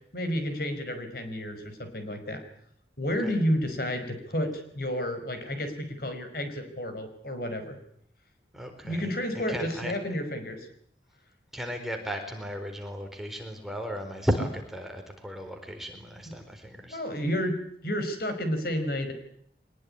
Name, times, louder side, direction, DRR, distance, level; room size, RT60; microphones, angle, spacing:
voice 1, 0.1-2.4 3.0-7.8 8.8-10.7 16.3-16.4 16.9-19.1, equal, 55° left, 8 dB, 5.2 m, -31 dB
voice 2, 8.5-9.0 9.5-9.9 11.5-17.0, equal, ahead, 4 dB, 4.1 m, -34 dB
24.0 x 21.0 x 10.0 m, 0.68 s
head